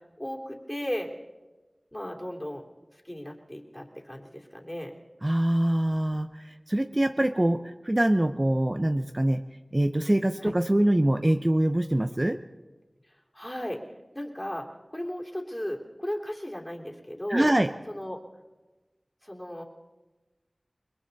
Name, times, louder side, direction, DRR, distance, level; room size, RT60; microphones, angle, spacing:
voice 1, 0.2-1.1 1.9-2.6 3.0-4.9 10.4-10.5 13.3-13.8 14.1-17.5 17.9-18.2 19.2-19.6, equal, 15° left, 0 dB, 3.2 m, -35 dB
voice 2, 5.2-9.4 9.7-12.4 17.3-17.7, right 1 dB, 30° right, 7 dB, 0.8 m, -24 dB
29.5 x 21.5 x 4.2 m, 1.2 s
wide cardioid pair, 50°, 0 cm